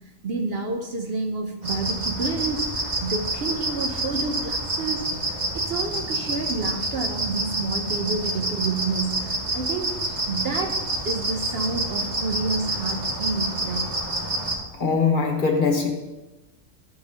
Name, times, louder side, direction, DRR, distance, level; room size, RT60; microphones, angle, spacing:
voice 1, 0.2-13.9, right 3 dB, 55° right, 4 dB, 0.8 m, -29 dB
sound 1, 1.6-14.6, right 1 dB, 35° right, 1.4 m, -28 dB
voice 2, 14.8-15.9, left 5 dB, 40° left, 1 dB, 1.2 m, -21 dB
11.5 x 4.1 x 5.2 m, 1.1 s
omnidirectional pair, 1.4 m